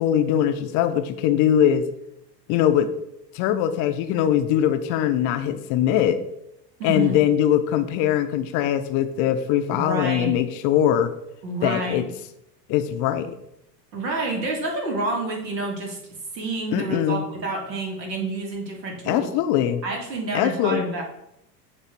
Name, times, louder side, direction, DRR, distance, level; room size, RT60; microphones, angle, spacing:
voice 1, 0.0-1.9 2.5-2.9 3.3-6.2 6.8-11.1 11.6-12.1 12.7-13.4 16.7-17.2 19.1-19.8 20.3-20.9, left 10 dB, 40° left, 9 dB, 0.5 m, -21 dB
voice 2, 6.8-7.2 9.7-10.4 11.4-12.1 13.9-16.0 16.3-19.3 19.8-21.0, right 2 dB, 85° right, 0 dB, 2.0 m, -28 dB
8.0 x 3.1 x 4.3 m, 0.83 s
hypercardioid pair, 90°, 50 cm